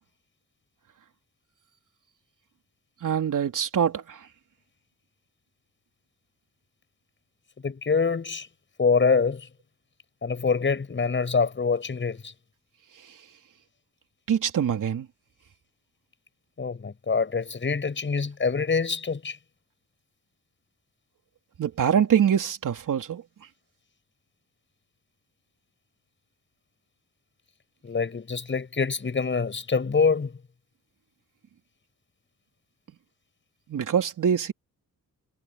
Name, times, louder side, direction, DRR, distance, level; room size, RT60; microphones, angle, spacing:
voice 1, 3.0-4.2 14.3-15.1 21.6-23.2 33.7-34.5, right 8 dB, 65° right, 3.4 m, -24 dB
voice 2, 7.6-8.5 8.8-9.5 10.2-12.3 16.6-19.4 27.8-30.4, left 5 dB, 35° left, 7.1 m, -25 dB
wide cardioid pair, 145°, 33 cm